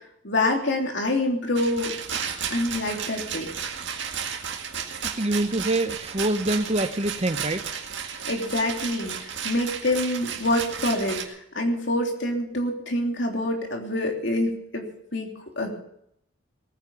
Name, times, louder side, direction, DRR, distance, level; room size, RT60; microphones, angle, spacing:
voice 1, 0.2-1.9 2.5-3.5 8.2-14.8 15.1-15.3 15.6-15.8, left 1 dB, 60° left, 2 dB, 3.2 m, -26 dB
Rattle, 1.6-11.2, right 7 dB, 65° right, 1.9 m, -33 dB
voice 2, 5.2-7.6, right 1 dB, 30° right, 11 dB, 0.8 m, -25 dB
18.5 x 9.8 x 7.1 m, 0.74 s
head